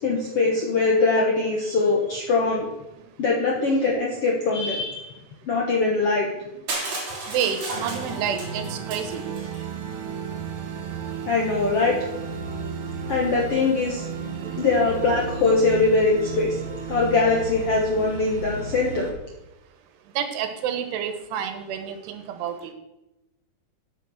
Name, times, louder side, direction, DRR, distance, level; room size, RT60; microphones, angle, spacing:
voice 1, 0.0-2.6 3.2-5.1 5.5-6.3 11.3-11.9 13.1-14.0 14.6-16.5 16.9-19.1, left 3 dB, 65° left, -1 dB, 1.5 m, -22 dB
Crushing, 6.7-9.6, right 2 dB, 45° right, 4.4 m, -33 dB
voice 2, 7.3-9.2 14.4-14.6 20.2-22.7, right 8 dB, 85° right, 8 dB, 3.3 m, -29 dB
sound 1, 7.7-19.1, right 5 dB, 60° right, 2.7 m, -33 dB
9.1 x 8.4 x 6.5 m, 0.96 s
omnidirectional pair, 4.6 m